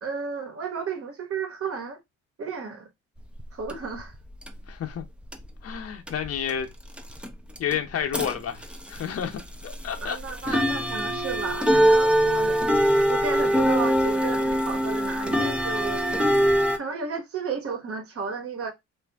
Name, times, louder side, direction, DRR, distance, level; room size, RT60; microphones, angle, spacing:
voice 1, 0.0-2.0 2.4-2.9 3.5-4.1 10.0-12.6 13.1-16.0 16.7-18.7, right 5 dB, 50° right, 1.4 m, -33 dB
sound 1, 3.2-5.0 5.3-5.8 6.1-16.8, equal, 5° right, 0.6 m, -23 dB
voice 2, 4.7-5.1 5.6-6.7 7.6-10.2 10.5-10.6, left 8 dB, 50° left, 0.8 m, -31 dB
3.0 x 2.6 x 3.5 m
cardioid pair, 90°, 30 cm